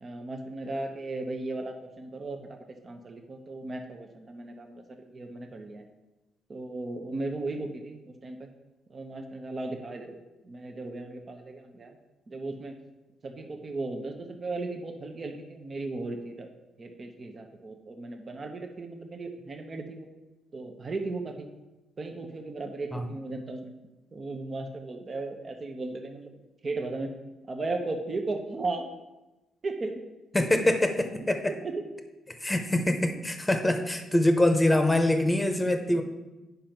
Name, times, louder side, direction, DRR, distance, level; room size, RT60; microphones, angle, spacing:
voice 1, 0.0-2.6 2.8-4.8 5.1-5.9 6.5-8.5 8.9-12.0 12.3-12.7 13.2-16.5 16.8-20.1 20.5-21.5 22.0-23.7 24.1-26.3 26.6-27.1 27.5-28.9 29.6-30.0 31.6-31.7, right 2 dB, 35° right, 4 dB, 1.0 m, -36 dB
voice 2, 30.3-31.5 32.4-36.0, left 1 dB, 10° left, 6 dB, 1.0 m, -24 dB
8.5 x 5.3 x 5.9 m, 1.1 s
cardioid pair, 90°, 0 cm